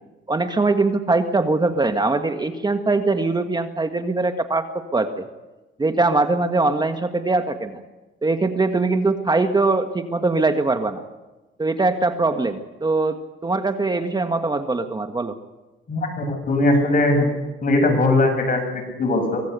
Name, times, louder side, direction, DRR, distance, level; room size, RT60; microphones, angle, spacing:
voice 1, 0.3-4.6 4.9-5.2 5.8-7.8 8.2-11.0 11.6-15.3, right 3 dB, 20° right, 7 dB, 1.5 m, -22 dB
voice 2, 15.9-17.3 17.6-19.4, left 2 dB, 45° left, 4 dB, 7.4 m, -20 dB
24.5 x 16.5 x 8.2 m, 1.1 s
cardioid pair, 90°, 20 cm